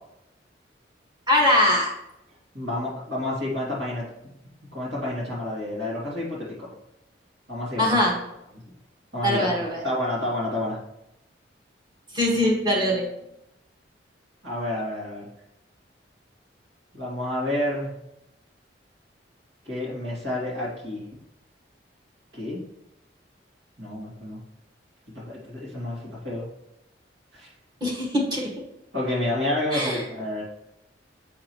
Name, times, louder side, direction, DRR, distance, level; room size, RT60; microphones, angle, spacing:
voice 1, 1.3-1.9 7.8-8.1 9.2-9.8 12.1-13.0 27.8-28.5 29.7-30.0, left 1 dB, 25° right, -2 dB, 1.7 m, -22 dB
voice 2, 2.5-4.0 4.7-6.7 7.5-8.0 9.1-10.8 14.4-15.3 16.9-17.9 19.6-21.0 22.3-22.6 23.8-24.4 25.1-26.4 27.3-27.5 28.9-30.4, left 1 dB, 70° right, -6 dB, 2.6 m, -29 dB
7.5 x 6.6 x 3.1 m, 0.84 s
head